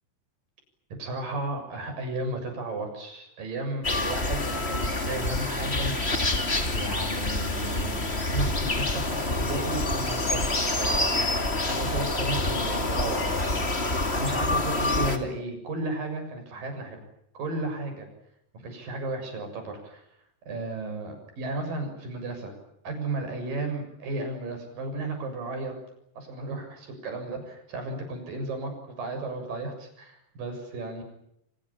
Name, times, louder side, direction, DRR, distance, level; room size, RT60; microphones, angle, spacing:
voice 1, 1.0-6.3 6.6-17.0 17.3-18.1 18.5-20.0 20.5-22.5 22.8-25.7 26.2-31.0, right 2 dB, 55° right, 5 dB, 8.7 m, -34 dB
sound 1, 3.8-15.2, left 2 dB, 20° left, 2.1 m, -27 dB
29.0 x 26.5 x 7.3 m, 0.76 s
omnidirectional pair, 4.8 m